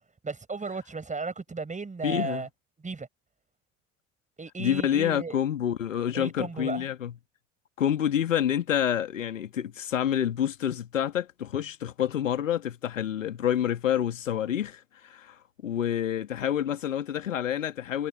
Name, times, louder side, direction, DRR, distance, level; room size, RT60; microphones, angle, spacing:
voice 1, 0.2-2.5 2.8-3.1 4.4-5.4 6.1-6.9, right 4 dB, 20° right, 6.6 m, -35 dB
voice 2, 2.0-2.4 4.6-7.1 7.8-18.1, left 10 dB, 75° left, 2.2 m, -28 dB
figure-of-eight pair, 60°, 39 cm